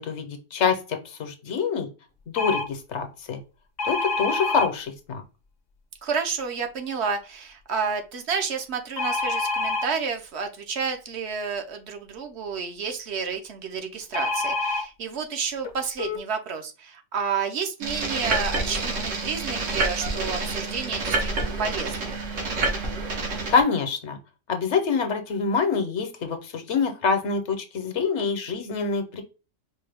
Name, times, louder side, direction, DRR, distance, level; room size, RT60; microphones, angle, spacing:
voice 1, 0.0-1.9 2.3-3.4 3.8-5.2 23.5-24.2 24.5-29.2, left 5 dB, 70° left, 6 dB, 1.0 m, -26 dB
sound 1, 2.4-2.7 3.8-4.7 9.0-9.9 14.1-14.8 15.6-15.7 16.0-16.2, left 3 dB, 45° left, 0.6 m, -26 dB
voice 2, 6.0-22.2, right 5 dB, 65° right, 5 dB, 0.9 m, -30 dB
sound 2, 17.8-23.6, right 3 dB, 85° right, 1.5 m, -28 dB
4.4 x 2.2 x 3.3 m, 0.32 s
omnidirectional pair, 1.3 m